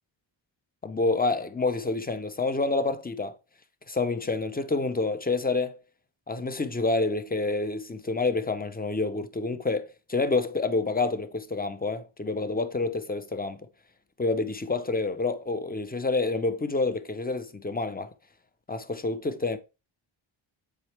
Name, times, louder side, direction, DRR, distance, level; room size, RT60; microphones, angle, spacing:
voice 1, 0.8-3.4 3.9-5.8 6.3-13.7 14.2-18.1 18.7-19.6, left 3 dB, 20° left, 0.8 m, -28 dB
7.6 x 5.0 x 3.4 m
cardioid pair, 85°, 48 cm